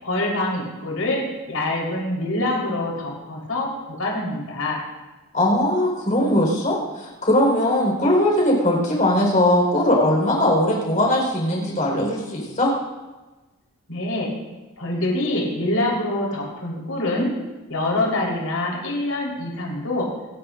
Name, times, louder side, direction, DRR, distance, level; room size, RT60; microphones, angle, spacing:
voice 1, 0.0-4.8 13.9-14.3 14.8-17.3 17.7-20.1, left 1 dB, 80° left, -3 dB, 4.2 m, -25 dB
voice 2, 5.3-12.7, left 1 dB, 35° left, -1 dB, 4.5 m, -20 dB
26.0 x 11.5 x 2.6 m, 1.2 s
head